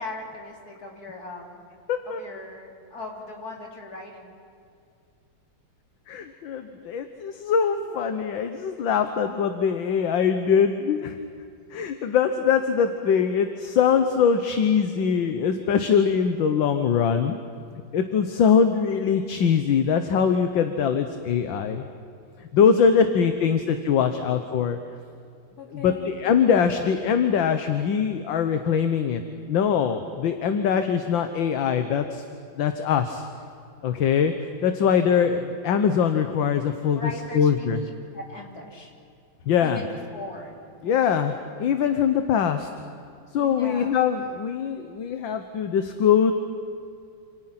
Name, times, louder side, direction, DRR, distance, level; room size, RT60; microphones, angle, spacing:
voice 1, 0.0-1.6 2.1-4.4 22.6-23.3 25.6-26.2 36.9-38.9 39.6-40.6 40.8-41.1 43.4-44.0, left 2 dB, 45° left, 0 dB, 3.9 m, -39 dB
voice 2, 1.9-2.2 6.1-11.2 11.7-17.4 17.9-21.9 22.5-24.8 25.7-29.2 29.5-32.2 32.6-33.3 33.8-37.0 37.3-37.8 39.5-39.8 40.8-41.3 41.6-42.7 43.3-46.3, left 7 dB, 65° left, 8 dB, 1.8 m, -22 dB
27.5 x 27.5 x 5.9 m, 2.5 s
omnidirectional pair, 2.3 m